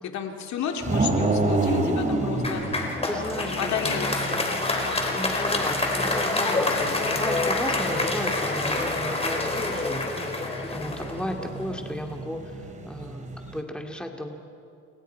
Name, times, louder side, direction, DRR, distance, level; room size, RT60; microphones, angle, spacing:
voice 1, 0.0-2.8 3.4-4.5 4.8-5.4, left 8 dB, 60° left, 4 dB, 2.4 m, -33 dB
sound 1, 0.8-13.6, right 2 dB, 25° right, 2.9 m, -31 dB
Applause, 2.4-11.8, left 2 dB, 20° left, 3.9 m, -27 dB
voice 2, 3.1-4.1 5.1-14.4, left 1 dB, 5° left, 2 dB, 2.3 m, -35 dB
29.5 x 27.5 x 4.6 m, 2.5 s
cardioid pair, 110°, 32 cm